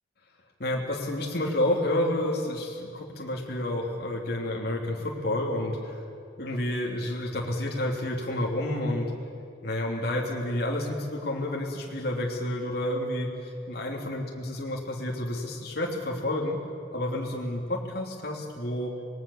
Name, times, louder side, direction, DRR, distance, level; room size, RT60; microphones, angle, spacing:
voice 1, 0.6-6.0 6.4-9.1 9.6-13.3 13.7-16.6 16.9-19.0, left 1 dB, 60° left, -2 dB, 3.1 m, -30 dB
25.5 x 20.5 x 7.2 m, 2.3 s
head